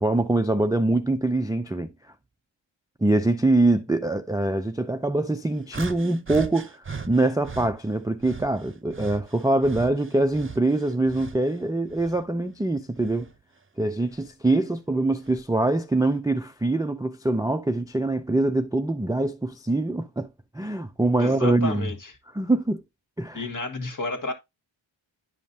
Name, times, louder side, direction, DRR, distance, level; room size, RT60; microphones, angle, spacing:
voice 1, 0.0-1.9 3.0-13.3 13.8-20.3 20.5-21.9 22.3-22.8 23.2-23.4, right 2 dB, 10° right, 0.3 m, -24 dB
sound 1, 5.7-7.7 8.2-11.5 11.9-13.4 14.1-14.3 15.2-15.4, right 5 dB, 25° right, 0.7 m, -39 dB
voice 2, 21.2-22.1 23.3-24.3, left 2 dB, 40° left, 1.5 m, -31 dB
10.0 x 5.3 x 2.7 m
wide cardioid pair, 125°, 46 cm